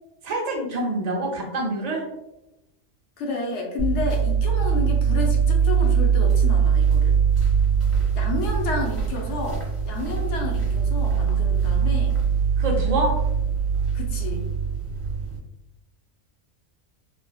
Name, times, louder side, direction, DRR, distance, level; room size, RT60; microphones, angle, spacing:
voice 1, 0.2-2.0 12.6-13.1, right 1 dB, 50° right, 0 dB, 0.5 m, -26 dB
voice 2, 3.2-7.2 8.1-12.1 13.9-14.4, left 2 dB, 75° left, 1 dB, 0.9 m, -30 dB
sound 1, 3.8-15.4, right 6 dB, 25° right, 1.2 m, -22 dB
3.3 x 2.1 x 2.2 m, 0.89 s
omnidirectional pair, 1.3 m